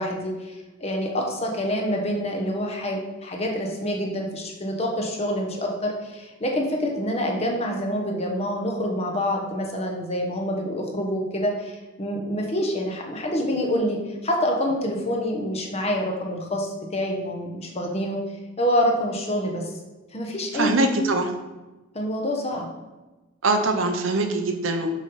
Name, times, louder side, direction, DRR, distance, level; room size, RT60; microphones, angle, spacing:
voice 1, 0.0-18.2 18.6-19.7 20.1-20.7 21.9-22.7, equal, 30° left, 0 dB, 1.1 m, -26 dB
voice 2, 20.5-21.3 23.4-24.9, right 2 dB, 75° right, 6 dB, 0.8 m, -22 dB
6.2 x 4.0 x 5.7 m, 1.1 s
head